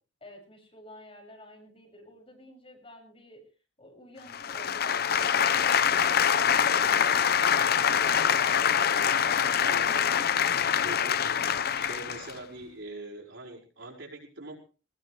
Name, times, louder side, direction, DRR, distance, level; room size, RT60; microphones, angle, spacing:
voice 1, 0.2-3.4 3.8-10.7, equal, 30° left, 1 dB, 6.5 m, -51 dB
sound 1, 4.3-12.3, left 8 dB, 55° left, 0.7 m, -25 dB
voice 2, 9.6-9.9 10.8-11.3 11.8-14.6, right 2 dB, 85° right, -1 dB, 5.4 m, -42 dB
20.0 x 18.5 x 3.3 m, 0.36 s
head